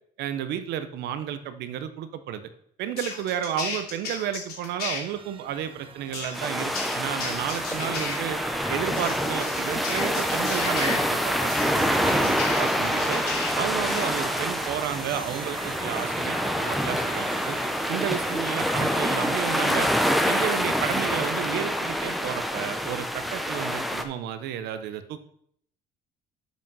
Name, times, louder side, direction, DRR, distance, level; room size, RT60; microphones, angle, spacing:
voice 1, 0.2-2.5 2.8-8.4 8.7-13.2 13.5-17.6 17.9-19.9 20.3-25.2, right 10 dB, 80° right, 11 dB, 0.8 m, -32 dB
sound 1, 3.0-5.0 6.1-8.1 8.9-11.0 11.5-13.5 13.9-14.4, left 5 dB, 75° left, 2.7 m, -34 dB
sound 2, 4.7-22.9, right 6 dB, 30° right, 0.5 m, -41 dB
sound 3, 6.3-24.0, equal, ahead, 0.8 m, -26 dB
7.4 x 5.1 x 5.5 m, 0.68 s
cardioid pair, 110°, 17 cm